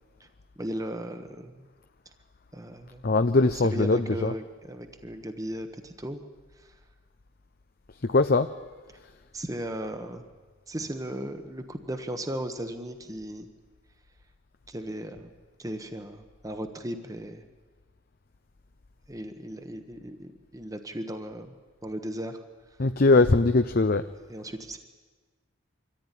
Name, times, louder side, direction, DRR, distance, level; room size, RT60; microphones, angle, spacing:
voice 1, 0.6-1.6 2.5-3.1 3.5-6.2 6.6-6.7 9.3-10.2 10.7-13.5 14.7-15.3 15.6-17.4 19.1-21.5 21.8-22.4 24.3-24.8, right 1 dB, 20° right, 7 dB, 1.2 m, -36 dB
voice 2, 3.0-4.3 8.0-8.5 22.8-24.1, left 3 dB, 50° left, 9 dB, 0.7 m, -21 dB
24.5 x 15.0 x 10.0 m, 1.4 s
head